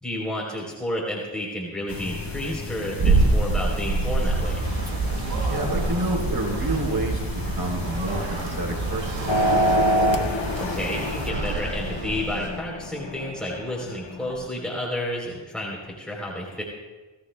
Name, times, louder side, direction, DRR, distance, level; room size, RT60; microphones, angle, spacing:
voice 1, 0.0-4.6 10.6-16.6, left 1 dB, ahead, -4 dB, 3.5 m, -31 dB
sound 1, 1.9-11.3, left 3 dB, 45° left, 1.5 m, -36 dB
sound 2, 3.0-12.5, right 3 dB, 70° right, 3.5 m, -26 dB
voice 2, 5.5-9.8, right 1 dB, 50° right, 1 dB, 3.7 m, -29 dB
sound 3, 9.3-14.4, equal, 65° left, 1.4 m, -26 dB
19.5 x 15.5 x 2.2 m, 1.3 s
cardioid pair, 50°, 48 cm